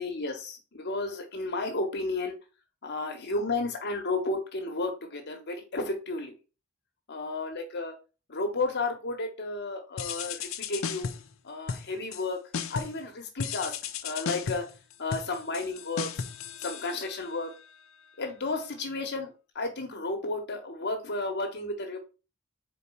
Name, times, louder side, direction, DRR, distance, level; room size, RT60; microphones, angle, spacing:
voice 1, 0.0-2.3 2.8-6.3 7.1-7.9 8.3-11.1 11.4-12.4 12.7-14.6 15.0-16.2 16.6-17.5 18.2-22.0, left 3 dB, 55° left, 4 dB, 1.3 m, -32 dB
sound 1, 10.0-11.3 11.7-12.3 12.5-13.0 13.4-17.4, left 6 dB, 70° left, 0.6 m, -35 dB
4.3 x 4.2 x 5.5 m, 0.33 s
head